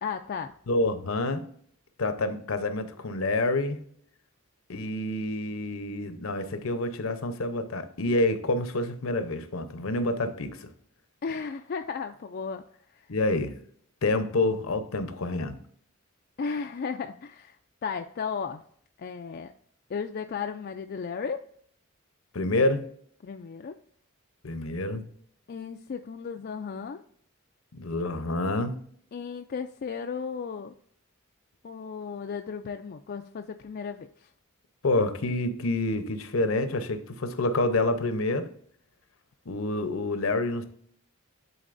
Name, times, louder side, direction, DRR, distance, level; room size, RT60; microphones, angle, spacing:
voice 1, 0.0-0.5 11.2-12.6 16.4-18.6 19.0-19.5 19.9-21.4 23.2-23.8 25.5-27.0 29.1-30.7 31.6-34.3, left 5 dB, 45° left, 0.3 m, -35 dB
voice 2, 0.7-1.4 2.0-3.8 4.7-10.7 13.1-13.5 14.0-15.6 22.3-22.9 24.4-25.1 27.7-28.7 34.8-38.5 39.5-40.6, left 2 dB, 70° left, 0.8 m, -28 dB
11.0 x 4.0 x 2.5 m
head